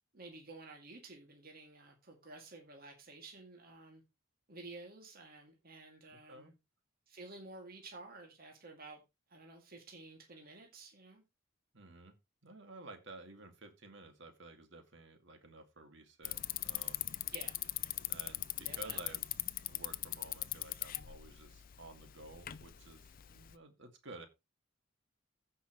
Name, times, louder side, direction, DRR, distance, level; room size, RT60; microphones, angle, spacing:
voice 1, 0.1-4.0 4.5-6.5 7.1-9.0 9.3-11.2 17.3-17.6 18.6-19.1, right 3 dB, 45° right, 2.2 m, -52 dB
voice 2, 6.1-6.5 11.7-12.2 12.4-17.1 18.1-19.3 19.6-24.3, right 2 dB, 60° right, 2.1 m, -53 dB
Bicycle, 16.2-23.5, left 15 dB, 45° left, 0.5 m, -41 dB
15.5 x 5.7 x 3.0 m
head